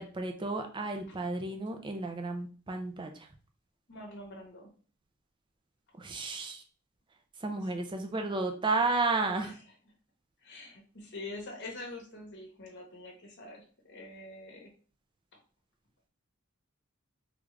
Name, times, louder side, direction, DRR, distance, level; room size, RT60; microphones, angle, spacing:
voice 1, 0.0-3.1 6.0-6.6 7.4-9.5, right 3 dB, 20° right, 5 dB, 0.4 m, -32 dB
voice 2, 3.9-4.7 7.7-7.8 9.4-9.6 10.4-14.7, left 2 dB, 50° left, 0 dB, 1.0 m, -45 dB
3.5 x 2.4 x 3.1 m, 0.40 s
head